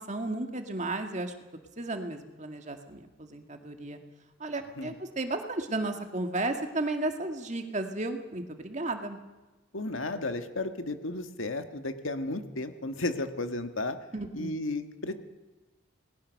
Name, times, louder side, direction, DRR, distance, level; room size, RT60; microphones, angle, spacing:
voice 1, 0.0-1.3 1.8-4.0 4.4-9.2 14.1-14.5, right 2 dB, 35° right, 5 dB, 2.0 m, -34 dB
voice 2, 9.7-14.0 14.3-15.1, left 2 dB, 85° left, 8 dB, 1.8 m, -33 dB
27.5 x 20.5 x 6.5 m, 1.2 s
head